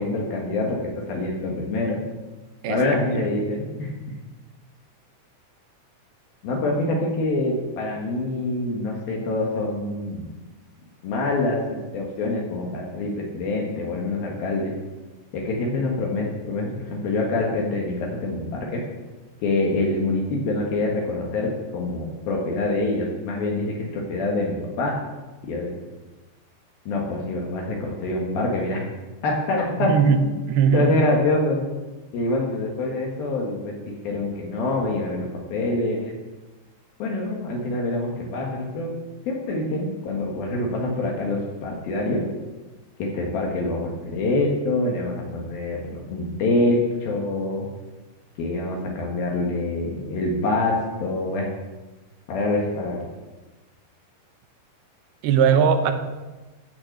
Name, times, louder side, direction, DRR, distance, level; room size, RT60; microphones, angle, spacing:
voice 1, 0.0-2.0 2.7-4.1 6.4-10.3 11.0-14.7 15.3-18.8 19.4-24.9 25.4-25.7 26.9-28.9 29.2-30.4 30.7-31.6 32.1-33.7 34.0-36.1 37.0-38.9 39.3-42.2 43.0-47.7 48.4-51.5 52.3-53.0, left 2 dB, 65° left, -1 dB, 3.1 m, -25 dB
voice 2, 2.6-3.4 29.8-31.0 55.2-55.9, right 6 dB, 75° right, 8 dB, 2.7 m, -20 dB
13.0 x 6.0 x 7.7 m, 1.2 s
omnidirectional pair, 4.9 m